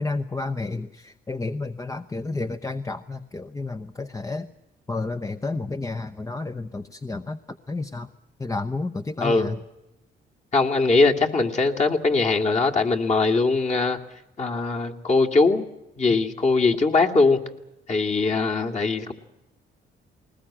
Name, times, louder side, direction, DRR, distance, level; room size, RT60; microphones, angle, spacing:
voice 1, 0.0-4.5 4.9-8.1 8.4-9.6 16.1-16.2, left 3 dB, 15° left, 7 dB, 0.8 m, -31 dB
voice 2, 10.5-14.0 14.4-15.7 16.0-17.4 17.9-19.1, left 3 dB, 35° left, 1 dB, 2.5 m, -21 dB
20.5 x 20.0 x 8.7 m, 0.90 s
cardioid pair, 90°, 20 cm